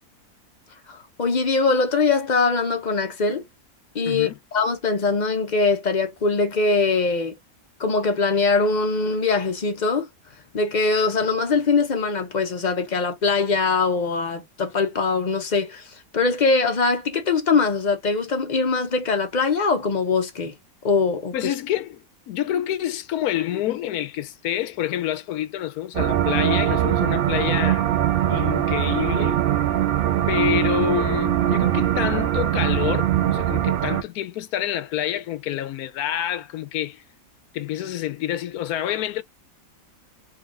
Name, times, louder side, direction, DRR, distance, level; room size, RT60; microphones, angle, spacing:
voice 1, 0.9-3.4 3.9-4.3 4.5-7.4 7.8-10.1 10.5-20.5 20.8-21.5, left 4 dB, 50° left, 0.5 m, -22 dB
voice 2, 4.0-4.4 21.3-22.0 22.3-27.9 28.3-29.4 30.3-37.0 37.5-39.2, left 11 dB, 75° left, 1.1 m, -27 dB
sound 1, 25.9-34.0, right 11 dB, 85° right, 0.5 m, -22 dB
3.9 x 2.5 x 3.7 m
omnidirectional pair, 1.6 m